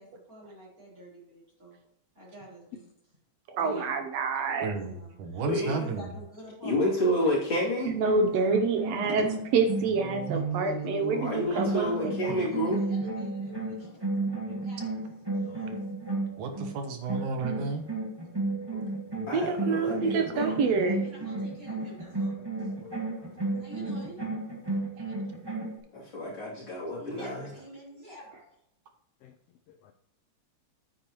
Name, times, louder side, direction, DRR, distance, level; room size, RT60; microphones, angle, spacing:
voice 1, 0.0-1.8 2.1-2.9 3.6-4.0 4.7-8.5 9.0-9.2 10.5-14.0 14.5-15.0 15.3-15.8 20.1-22.3 22.6-22.8 23.5-24.2 27.0-28.4, equal, 30° right, -5 dB, 4.1 m, -47 dB
voice 2, 3.5-4.7 7.9-9.2 9.5-12.3 19.3-21.0, right 4 dB, 70° right, 6 dB, 1.8 m, -27 dB
voice 3, 4.6-6.1 16.1-17.8, right 4 dB, 85° right, 5 dB, 2.6 m, -33 dB
voice 4, 5.5-5.8 6.6-7.9 11.1-12.8 18.7-18.8 19.3-20.6 25.9-27.5, left 1 dB, 40° left, -6 dB, 3.6 m, -29 dB
sound 1, 7.9-16.7 17.1-25.8, right 2 dB, 10° right, 1.3 m, -33 dB
voice 5, 22.4-23.6 29.2-29.3 29.7-29.9, left 9 dB, 85° left, 7 dB, 1.4 m, -53 dB
9.3 x 8.8 x 3.0 m, 0.77 s
omnidirectional pair, 3.4 m